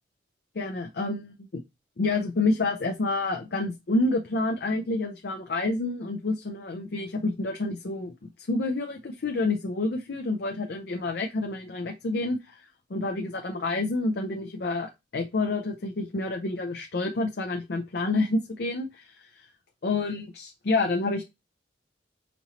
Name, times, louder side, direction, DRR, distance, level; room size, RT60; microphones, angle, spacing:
voice 1, 0.6-1.6 2.0-8.1 8.5-19.5 19.8-21.2, left 2 dB, 55° left, 4 dB, 0.5 m, -28 dB
5.2 x 2.8 x 2.9 m, 0.22 s
head